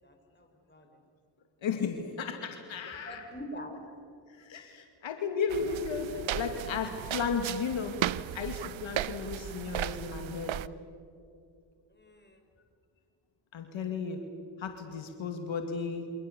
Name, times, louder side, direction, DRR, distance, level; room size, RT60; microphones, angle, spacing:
voice 1, 0.0-0.9 3.0-3.8 11.9-12.4, equal, 20° left, 4 dB, 5.6 m, -44 dB
voice 2, 1.6-3.2 4.3-8.0 8.3-10.6 13.5-14.3 14.6-16.1, left 5 dB, 75° left, 5 dB, 2.3 m, -34 dB
sound 1, 5.5-10.7, right 12 dB, 75° right, 0.8 m, -36 dB
28.5 x 28.0 x 7.0 m, 2.5 s
cardioid pair, 65°, 46 cm